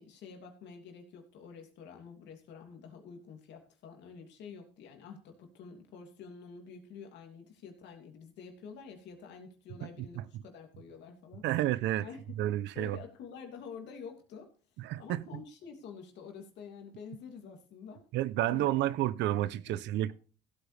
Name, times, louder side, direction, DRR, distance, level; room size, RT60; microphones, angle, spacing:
voice 1, 0.0-11.4 12.0-12.4 12.7-14.5 15.0-18.0 18.4-18.9 19.7-19.8, left 6 dB, 70° left, 2.9 m, -48 dB
voice 2, 11.4-12.1 12.4-13.0 14.8-15.2 18.1-20.1, right 14 dB, 75° right, 0.7 m, -30 dB
15.5 x 8.6 x 3.4 m
supercardioid pair, 90°, 19 cm